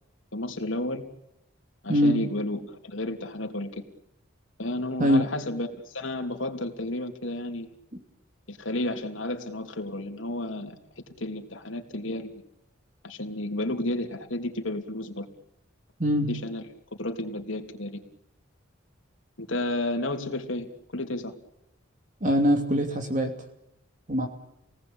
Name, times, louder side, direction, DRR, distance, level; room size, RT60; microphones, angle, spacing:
voice 1, 0.3-1.0 1.8-3.8 4.6-7.7 8.5-10.8 11.2-12.4 13.0-15.3 16.3-16.6 17.0-18.0 19.4-21.3, left 1 dB, 70° left, 4 dB, 3.2 m, -32 dB
voice 2, 22.2-23.3 24.1-24.3, equal, 40° right, 4 dB, 2.8 m, -22 dB
28.0 x 19.0 x 8.9 m, 0.85 s
head